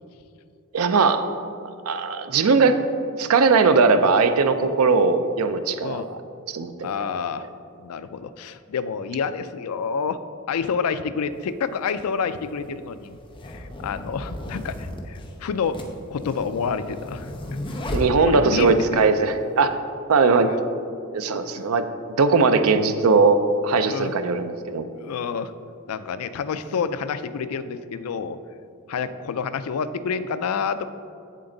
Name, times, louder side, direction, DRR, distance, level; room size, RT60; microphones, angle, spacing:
voice 1, 0.7-1.2 1.9-2.8 3.2-6.2 6.5-7.1 17.9-19.7 20.1-20.5 21.1-21.8 22.2-24.9, right 4 dB, 70° right, 9 dB, 0.5 m, -19 dB
voice 2, 6.8-7.5 7.8-10.2 10.5-13.2 13.4-15.8 16.1-17.3 18.3-19.1 20.5-20.6 21.5-21.7 23.8-24.1 25.0-25.5 25.9-28.4 28.9-30.8, left 6 dB, 75° left, 12 dB, 0.4 m, -28 dB
sound 1, 11.3-11.4 12.3-18.8, left 1 dB, 20° left, 0.8 m, -34 dB
7.9 x 7.4 x 3.9 m, 2.5 s
head